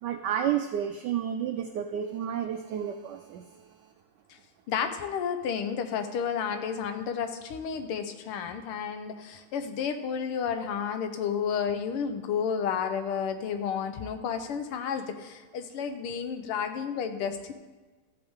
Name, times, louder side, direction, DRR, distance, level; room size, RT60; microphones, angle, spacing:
voice 1, 0.0-3.6, right 9 dB, 85° right, 6 dB, 0.9 m, -31 dB
voice 2, 4.7-17.5, left 7 dB, 90° left, 8 dB, 1.8 m, -31 dB
13.0 x 8.0 x 3.6 m, 1.3 s
omnidirectional pair, 2.4 m